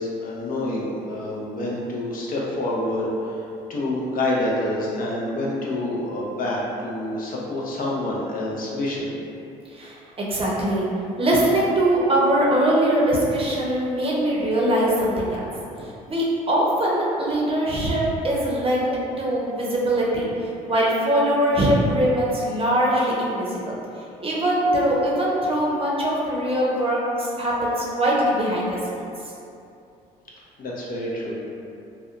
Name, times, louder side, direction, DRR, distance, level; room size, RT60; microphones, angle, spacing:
voice 1, 0.0-3.4 3.7-9.1 30.6-31.4, left 1 dB, 45° left, -4 dB, 0.6 m, -27 dB
voice 2, 9.7-10.9 11.2-15.5 16.1-18.9 19.2-20.2 20.7-23.7 24.2-29.0, right 1 dB, 30° right, -5 dB, 0.7 m, -22 dB
2.6 x 2.2 x 2.4 m, 2.6 s
hypercardioid pair, 65°, 20 cm